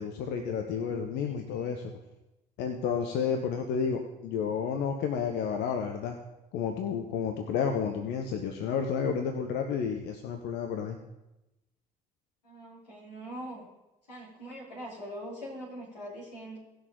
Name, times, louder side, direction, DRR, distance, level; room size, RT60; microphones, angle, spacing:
voice 1, 0.0-1.9 2.6-6.2 6.5-11.0, left 6 dB, 55° left, 5 dB, 0.9 m, -31 dB
voice 2, 1.2-1.7 12.4-13.7 14.1-16.6, equal, 80° left, -6 dB, 3.2 m, -43 dB
17.5 x 6.4 x 3.7 m, 0.96 s
figure-of-eight pair, 50°, 21 cm